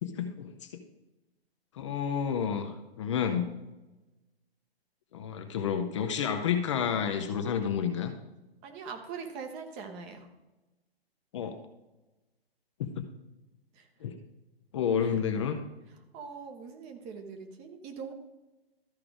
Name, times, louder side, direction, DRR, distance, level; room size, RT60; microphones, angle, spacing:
voice 1, 0.0-0.5 1.7-3.5 5.1-8.1 11.3-11.6 12.8-13.1 14.0-14.2 14.7-15.6, left 7 dB, 30° left, 6 dB, 0.6 m, -30 dB
voice 2, 8.6-10.3 13.7-13.9 15.0-15.2 16.1-18.1, right 5 dB, 20° right, 5 dB, 0.9 m, -42 dB
13.0 x 4.8 x 4.8 m, 1.1 s
figure-of-eight pair, 125°, 31 cm